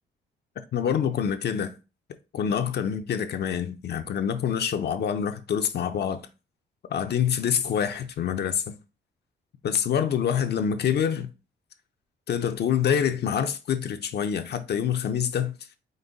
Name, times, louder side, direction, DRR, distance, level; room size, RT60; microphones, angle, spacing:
voice 1, 0.7-1.7 2.3-6.3 6.9-8.7 9.6-11.3 12.3-15.5, left 8 dB, 55° left, 0.6 m, -26 dB
5.2 x 2.2 x 3.9 m
cardioid pair, 90°, 20 cm